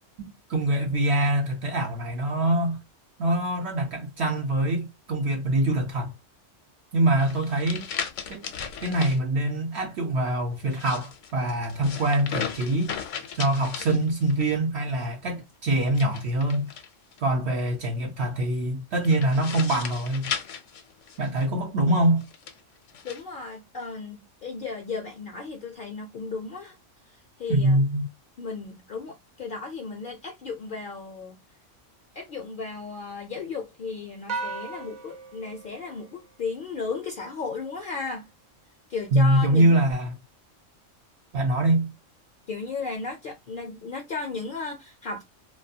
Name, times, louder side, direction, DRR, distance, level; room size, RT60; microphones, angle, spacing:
voice 1, 0.2-2.8 3.2-6.2 6.9-7.9 8.3-8.5 8.8-12.9 13.3-16.7 17.2-20.3 21.2-22.2 27.5-28.1 39.1-40.1 41.3-41.9, right 1 dB, 70° right, 0.8 m, -24 dB
sound 1, 7.2-9.2 10.6-14.5 15.9-17.2 19.0-21.5 22.2-23.2, left 7 dB, 80° left, 0.9 m, -36 dB
voice 2, 23.0-26.8 27.4-27.8 28.4-31.4 32.1-38.3 38.9-39.8 42.5-45.2, left 4 dB, 60° left, 0.6 m, -35 dB
sound 2, 34.3-36.8, right 4 dB, 50° right, 0.5 m, -37 dB
2.3 x 2.2 x 2.7 m
omnidirectional pair, 1.3 m